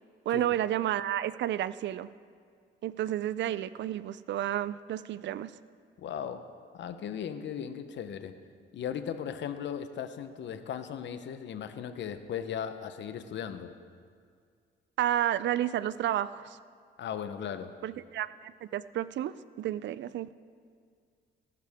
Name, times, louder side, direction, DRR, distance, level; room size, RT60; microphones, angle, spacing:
voice 1, 0.3-2.1 2.8-5.5 15.0-16.6 17.8-20.3, right 12 dB, 65° right, 16 dB, 0.4 m, -31 dB
voice 2, 6.0-6.5 6.7-8.3 8.7-13.7 17.0-17.7, left 8 dB, 65° left, 10 dB, 0.9 m, -37 dB
19.0 x 12.0 x 3.6 m, 2.1 s
cardioid pair, 90°, 20 cm